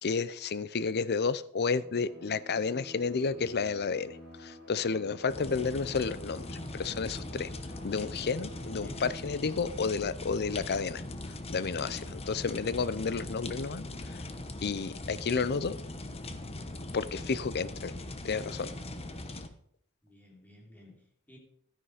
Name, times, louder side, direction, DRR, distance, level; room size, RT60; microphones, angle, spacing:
voice 1, 0.0-7.5 7.8-11.0 11.5-13.8 14.6-15.7 16.9-17.9 18.2-18.7, left 5 dB, 45° left, 16 dB, 0.6 m, -31 dB
Bowed string instrument, 1.6-10.1, left 1 dB, 75° left, 4.8 m, -50 dB
sound 1, 5.3-19.5, left 2 dB, 25° left, 1.0 m, -41 dB
voice 2, 8.6-9.1 17.9-18.2 20.0-21.0 21.3-21.4, equal, 10° left, -2 dB, 3.5 m, -55 dB
13.0 x 9.8 x 5.0 m, 0.66 s
head